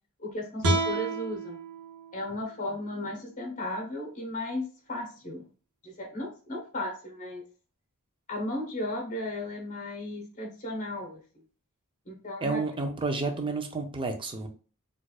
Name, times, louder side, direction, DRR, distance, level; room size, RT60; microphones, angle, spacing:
voice 1, 0.2-1.6 2.1-5.5 5.8-7.4 8.3-11.2 12.1-12.7, left 1 dB, 35° left, 0 dB, 1.0 m, -35 dB
sound 1, 0.6-3.8, right 2 dB, 90° right, 1.0 m, -32 dB
voice 2, 12.4-14.5, right 3 dB, 20° right, 5 dB, 0.5 m, -30 dB
4.4 x 2.4 x 2.3 m, 0.38 s
head